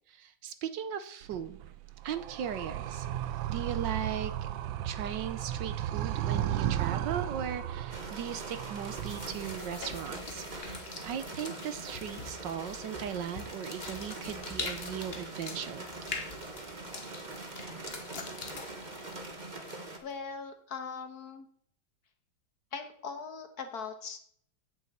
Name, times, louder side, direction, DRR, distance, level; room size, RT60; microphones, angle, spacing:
voice 1, 0.1-1.6 2.0-3.1 3.5-4.5 4.8-15.9, right 8 dB, 70° right, 12 dB, 1.4 m, -38 dB
Animal, 1.2-9.8, right 12 dB, 85° right, 1.5 m, -35 dB
sound 1, 7.9-20.0, right 2 dB, 25° right, 1.5 m, -43 dB
sound 2, 8.9-20.1, left 3 dB, 35° left, 1.5 m, -44 dB
voice 2, 20.0-21.5 22.7-24.2, left 5 dB, 55° left, 6 dB, 1.6 m, -40 dB
8.4 x 7.3 x 8.0 m, 0.62 s
omnidirectional pair, 2.1 m